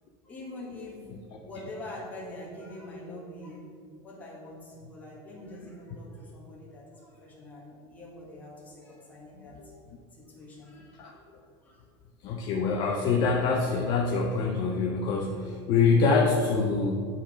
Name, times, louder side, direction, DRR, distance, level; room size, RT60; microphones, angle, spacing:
voice 1, 0.2-3.7 4.0-9.8 10.1-11.8, left 1 dB, 15° left, -4 dB, 1.5 m, -44 dB
voice 2, 12.2-17.1, left 4 dB, 35° left, 1 dB, 0.5 m, -25 dB
9.1 x 3.9 x 5.0 m, 2.2 s
supercardioid pair, 170°, 12 cm